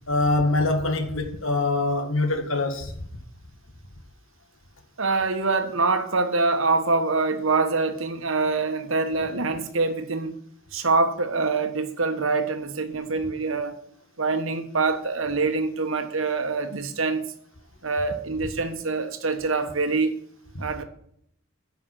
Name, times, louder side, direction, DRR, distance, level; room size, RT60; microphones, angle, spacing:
voice 1, 0.1-2.9, left 2 dB, 70° left, 1.8 m, -24 dB
voice 2, 5.0-10.4 10.7-13.8 14.2-17.2 17.8-20.1 20.6-20.8, right 3 dB, 70° right, 1.3 m, -25 dB
10.0 x 5.7 x 7.7 m
head